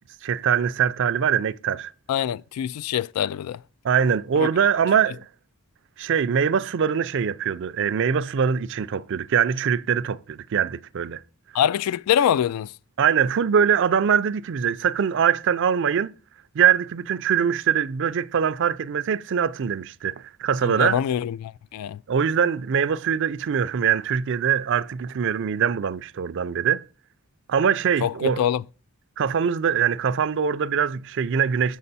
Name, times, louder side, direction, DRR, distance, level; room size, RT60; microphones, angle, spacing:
voice 1, 0.2-1.9 3.8-5.2 6.0-11.2 13.0-16.1 16.5-21.0 22.1-26.8 27.5-28.4 29.2-31.8, right 7 dB, 55° right, 0.4 m, -23 dB
voice 2, 2.1-3.6 4.4-4.5 11.5-12.7 20.6-22.0 28.0-28.6, left 9 dB, 90° left, 0.3 m, -24 dB
7.2 x 5.5 x 4.1 m
head